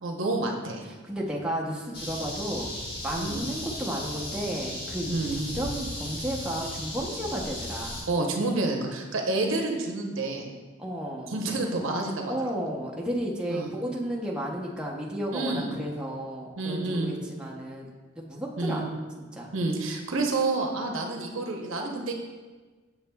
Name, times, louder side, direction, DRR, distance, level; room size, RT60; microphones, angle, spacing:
voice 1, 0.0-0.9 3.2-3.4 5.1-5.4 8.0-10.5 11.3-12.3 13.5-13.7 15.3-15.8 16.6-17.1 18.6-18.9 19.5-22.1, right 2 dB, 85° right, 2 dB, 0.8 m, -29 dB
voice 2, 1.0-2.8 3.0-8.1 10.8-11.3 12.2-17.9 18.2-18.8 19.3-19.5, right 1 dB, 5° right, -3 dB, 0.6 m, -33 dB
sound 1, 1.9-8.0, left 1 dB, 45° left, 1.6 m, -36 dB
7.0 x 6.8 x 2.2 m, 1.3 s
head